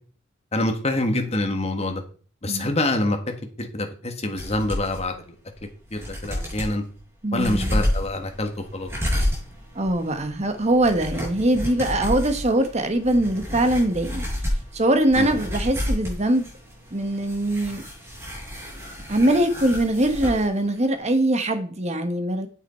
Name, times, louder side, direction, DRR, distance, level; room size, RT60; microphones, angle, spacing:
voice 1, 0.5-2.0 2.4-3.2 3.6-5.4 5.9-6.8 7.3-8.9 15.2-15.4, left 2 dB, 35° left, 4 dB, 1.7 m, -26 dB
sound 1, 4.4-5.0 5.5-5.6 5.9-6.7 7.3-20.5 20.8-20.9, left 1 dB, 15° right, 5.5 m, -30 dB
voice 2, 7.2-7.8 9.7-14.3 14.7-16.5 16.9-17.8 19.1-22.5, right 1 dB, 35° right, 8 dB, 1.3 m, -22 dB
8.7 x 8.2 x 4.4 m, 0.40 s
head